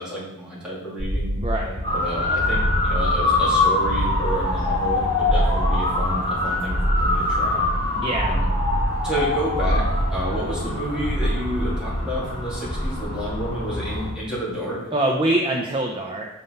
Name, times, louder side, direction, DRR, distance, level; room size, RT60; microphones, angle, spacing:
voice 1, 0.0-1.3 1.9-7.7 8.2-8.5 9.0-14.8, right 1 dB, 5° right, -8 dB, 2.5 m, -30 dB
sound 1, 1.0-12.3, equal, 55° right, 2.2 m, -26 dB
voice 2, 1.4-1.8 8.0-8.3 14.9-16.3, right 1 dB, 25° right, 0 dB, 0.6 m, -24 dB
Motor vehicle (road) / Siren, 1.8-14.1, left 2 dB, 20° left, 2.4 m, -25 dB
5.9 x 5.5 x 5.2 m, 0.93 s
head